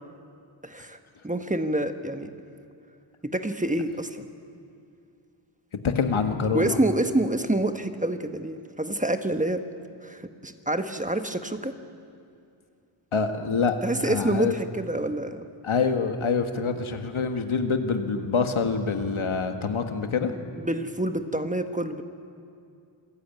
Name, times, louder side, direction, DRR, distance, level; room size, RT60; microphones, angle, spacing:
voice 1, 0.6-1.0 1.2-2.3 3.2-4.2 6.5-9.6 10.0-11.7 13.8-15.4 20.6-22.0, right 1 dB, 15° right, 8 dB, 1.1 m, -27 dB
voice 2, 5.8-6.8 13.1-13.8 14.0-14.6 15.6-20.3, left 5 dB, 80° left, 6 dB, 1.7 m, -26 dB
26.5 x 14.0 x 9.2 m, 2.4 s
wide cardioid pair, 90°, 49 cm